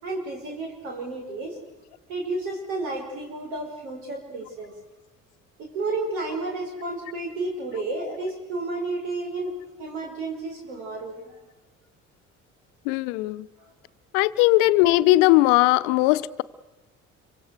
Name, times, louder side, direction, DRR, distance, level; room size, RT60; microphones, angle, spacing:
voice 1, 0.0-1.6 2.1-4.7 5.6-11.4 13.6-13.7, right 2 dB, 80° right, 5.3 m, -32 dB
voice 2, 12.9-13.5 14.1-16.4, left 18 dB, 75° left, 0.8 m, -19 dB
27.0 x 24.5 x 6.5 m
hypercardioid pair, 50°, 37 cm